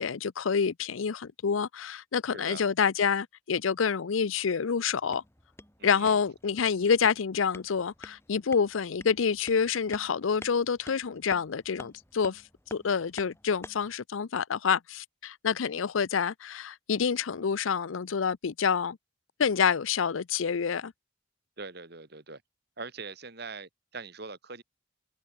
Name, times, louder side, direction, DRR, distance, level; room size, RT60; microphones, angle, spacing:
voice 1, 0.0-5.2 5.8-12.4 12.7-19.0 19.4-20.9, left 6 dB, 85° left, 0.6 m, -27 dB
voice 2, 2.3-2.6 5.8-6.2 21.6-22.4 22.8-24.6, right 4 dB, 55° right, 2.4 m, -42 dB
sound 1, 4.9-13.9, left 1 dB, 15° left, 3.4 m, -50 dB
head